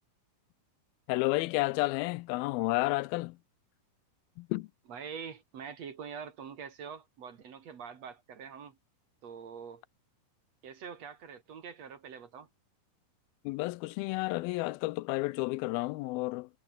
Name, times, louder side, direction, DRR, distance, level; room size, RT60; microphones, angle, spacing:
voice 1, 1.1-3.4 4.4-4.7 13.5-16.5, left 21 dB, 90° left, 2.4 m, -31 dB
voice 2, 4.9-8.8 9.2-9.8 10.6-12.5, right 7 dB, 50° right, 2.9 m, -44 dB
omnidirectional pair, 4.2 m